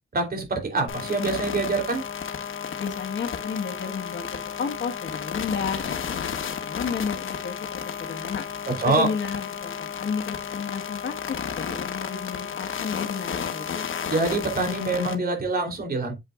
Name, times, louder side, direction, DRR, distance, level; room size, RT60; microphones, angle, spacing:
voice 1, 0.1-2.0 8.7-9.1 14.1-16.1, right 3 dB, 50° right, 3.4 m, -25 dB
sound 1, 0.9-15.1, left 8 dB, 85° left, 1.3 m, -32 dB
voice 2, 2.8-8.5 8.8-13.9, left 6 dB, 70° left, 1.5 m, -32 dB
8.8 x 7.6 x 2.5 m
wide cardioid pair, 160°, 20 cm